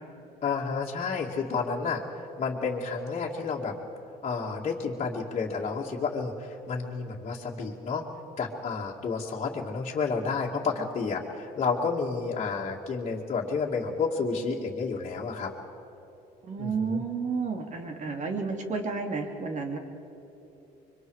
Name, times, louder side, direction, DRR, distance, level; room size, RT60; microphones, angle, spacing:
voice 1, 0.4-3.7 4.2-8.0 8.4-15.5 16.6-17.0, left 4 dB, 40° left, -3 dB, 2.2 m, -30 dB
voice 2, 16.4-19.8, right 4 dB, 45° right, 3 dB, 2.9 m, -31 dB
25.5 x 23.5 x 4.9 m, 3.0 s
cardioid pair, 110°, 17 cm